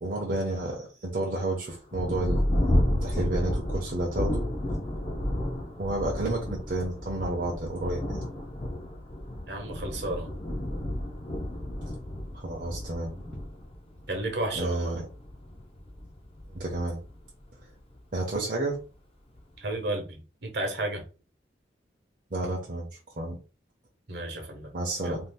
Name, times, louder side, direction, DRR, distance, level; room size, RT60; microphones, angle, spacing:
voice 1, 0.0-2.4 3.0-4.4 5.8-8.2 12.3-13.1 14.5-15.0 16.5-17.0 18.1-18.8 22.3-22.9 23.2-23.4 24.7-25.2, right 2 dB, 45° right, 0.7 m, -30 dB
Thunder, 1.9-18.0 18.7-18.8 19.4-19.8, left 1 dB, 30° left, 0.5 m, -32 dB
voice 2, 9.5-10.3 14.1-14.9 19.6-21.0 24.1-24.7 25.0-25.2, right 2 dB, 70° right, 1.0 m, -32 dB
2.7 x 2.4 x 3.4 m
head